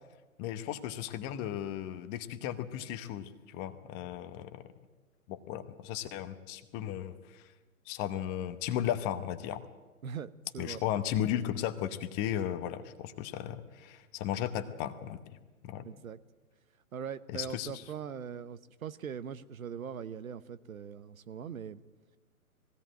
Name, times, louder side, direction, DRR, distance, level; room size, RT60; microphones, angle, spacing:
voice 1, 0.4-4.6 5.3-7.5 7.9-9.6 10.6-15.2 15.6-15.8 17.3-17.8, left 11 dB, 20° left, 11 dB, 1.0 m, -35 dB
voice 2, 10.0-10.8 15.8-16.2 16.9-21.8, right 7 dB, 70° right, 15 dB, 1.0 m, -41 dB
20.0 x 16.5 x 8.9 m, 1.2 s
figure-of-eight pair, 125°, 44 cm